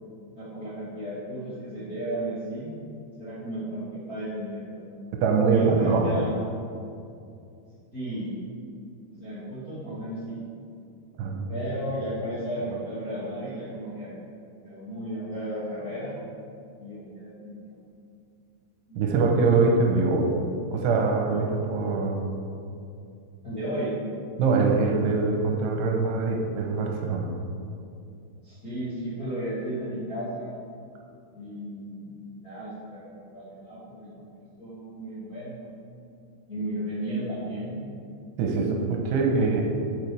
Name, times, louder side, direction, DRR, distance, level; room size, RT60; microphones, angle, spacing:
voice 1, 0.3-2.7 3.2-4.8 5.5-6.6 7.9-8.4 9.2-10.4 11.5-14.1 14.6-16.2 16.8-17.9 18.9-19.0 23.4-24.0 28.4-30.6 31.3-35.6 36.5-37.8 38.5-39.2, right 1 dB, 35° left, -12 dB, 1.5 m, -34 dB
voice 2, 5.2-6.1 11.2-11.5 19.0-20.3 20.7-22.3 24.4-27.3 38.4-38.7 39.1-39.6, right 4 dB, 80° right, 1 dB, 2.9 m, -23 dB
9.0 x 7.9 x 3.4 m, 2.5 s
omnidirectional pair, 4.8 m